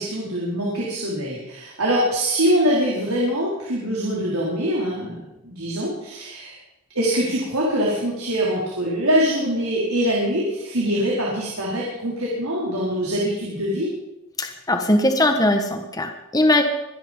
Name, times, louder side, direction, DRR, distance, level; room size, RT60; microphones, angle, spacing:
voice 1, 0.0-5.2 5.4-6.6 6.9-13.9, equal, 85° right, -5 dB, 4.6 m, -23 dB
voice 2, 14.4-16.6, left 1 dB, 15° left, 4 dB, 1.3 m, -20 dB
24.5 x 10.5 x 5.5 m, 0.93 s
head